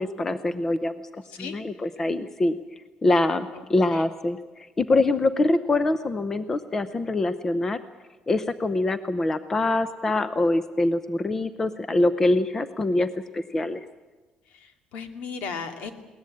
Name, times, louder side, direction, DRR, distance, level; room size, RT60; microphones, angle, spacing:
voice 1, 0.0-2.6 3.0-7.8 8.3-13.1 13.3-13.8, left 2 dB, 15° left, 12 dB, 0.6 m, -24 dB
voice 2, 14.5-15.9, left 5 dB, 70° left, 7 dB, 2.3 m, -36 dB
21.5 x 18.5 x 8.6 m, 1.2 s
cardioid pair, 175°, 2 cm